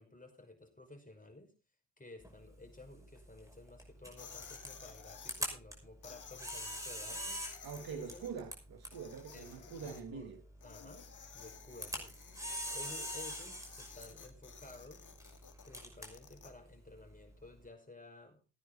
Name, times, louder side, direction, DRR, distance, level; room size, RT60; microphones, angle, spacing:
voice 1, 0.0-1.5 2.0-8.3 9.3-10.3 10.6-11.1 11.3-15.1 15.6-18.4, left 2 dB, 20° left, 5.4 m, -54 dB
Camera, 2.2-17.7, equal, 10° right, 5.8 m, -46 dB
sound 1, 4.2-5.5 6.0-8.3 8.8-10.0 10.6-16.5, left 6 dB, 50° left, 2.4 m, -53 dB
voice 2, 7.6-10.4, right 6 dB, 65° right, 1.6 m, -45 dB
17.0 x 9.5 x 4.0 m
hypercardioid pair, 45°, 39 cm